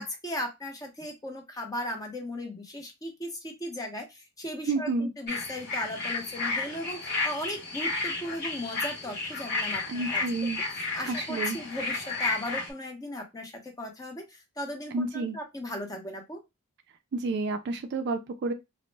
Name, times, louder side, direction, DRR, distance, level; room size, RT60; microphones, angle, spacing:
voice 1, 0.0-10.2 10.7-16.4, left 1 dB, 15° left, 0.6 m, -37 dB
voice 2, 4.7-5.1 9.9-10.6 11.1-11.6 14.9-15.4 17.1-18.5, right 3 dB, 50° right, 0.3 m, -30 dB
Night Ambience Country, 5.3-12.7, left 3 dB, 45° left, 0.9 m, -32 dB
2.0 x 2.0 x 3.2 m
head